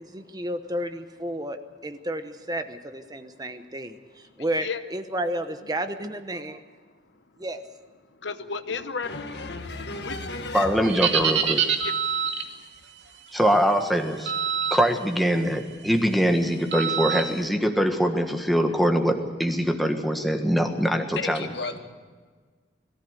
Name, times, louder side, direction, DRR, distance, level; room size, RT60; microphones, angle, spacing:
voice 1, 0.0-1.6 1.8-6.6 7.4-7.6, right 1 dB, 20° right, 8 dB, 1.0 m, -32 dB
voice 2, 8.2-9.1 9.9-10.4 11.8-12.4, left 5 dB, 80° left, 10 dB, 0.9 m, -34 dB
voice 3, 9.0-10.9 21.1-21.8, left 3 dB, 65° left, 6 dB, 1.9 m, -34 dB
voice 4, 10.5-11.6 13.3-14.3 14.7-21.4, equal, ahead, 4 dB, 1.6 m, -23 dB
sound 1, 10.8-12.5 14.3-14.8 15.2-15.5 16.7-17.2, right 7 dB, 80° right, 2.2 m, -25 dB
21.5 x 14.5 x 8.2 m, 1.5 s
head